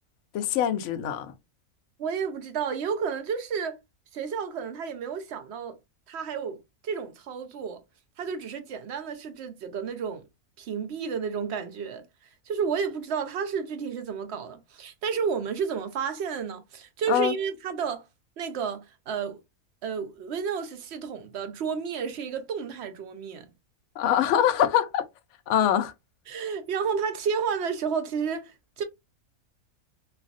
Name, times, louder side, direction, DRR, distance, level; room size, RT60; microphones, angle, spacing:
voice 1, 0.3-1.3 17.1-17.3 24.0-25.1 25.5-25.9, left 10 dB, 65° left, 0.8 m, -23 dB
voice 2, 2.0-3.8 4.1-5.8 6.1-7.8 8.2-10.2 10.6-12.0 12.5-18.0 18.4-19.4 19.8-23.5 26.3-28.8, right 6 dB, 60° right, 0.8 m, -31 dB
3.3 x 2.3 x 2.4 m
omnidirectional pair, 1.5 m